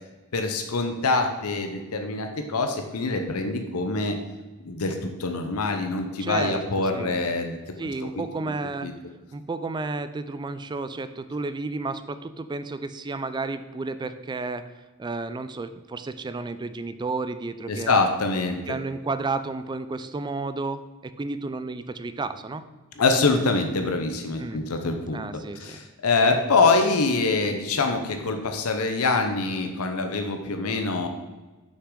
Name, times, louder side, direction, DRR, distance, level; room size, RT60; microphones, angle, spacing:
voice 1, 0.3-4.2 4.6-7.6 8.8-8.9 17.7-18.6 23.0-25.2 25.6-31.1, left 3 dB, 80° left, 5 dB, 0.7 m, -24 dB
voice 2, 6.2-7.2 7.8-8.9 9.3-14.7 15.0-18.0 18.7-22.7 24.4-24.6 25.1-25.8, right 3 dB, 20° right, 11 dB, 0.3 m, -32 dB
6.5 x 5.9 x 3.8 m, 1.2 s
head